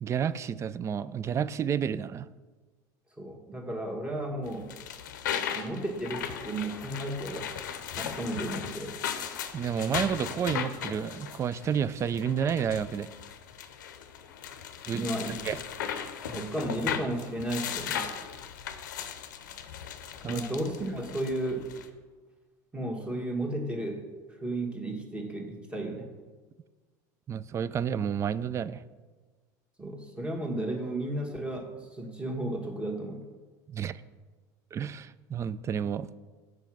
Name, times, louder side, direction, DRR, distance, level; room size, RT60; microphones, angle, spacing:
voice 1, 0.0-2.3 9.5-13.1 14.9-15.0 15.4-15.6 20.2-20.4 27.3-28.8 33.7-34.0 34.7-36.1, right 8 dB, 30° right, 17 dB, 0.3 m, -30 dB
voice 2, 3.2-4.7 5.5-7.5 7.9-9.0 14.9-15.4 16.3-18.1 20.2-21.7 22.7-24.0 24.3-26.1 29.8-33.3, right 1 dB, 10° right, 1 dB, 1.5 m, -34 dB
sound 1, 4.4-21.9, left 8 dB, 90° left, 0.6 m, -37 dB
6.9 x 4.8 x 6.1 m, 1.4 s
hypercardioid pair, 95°, 10 cm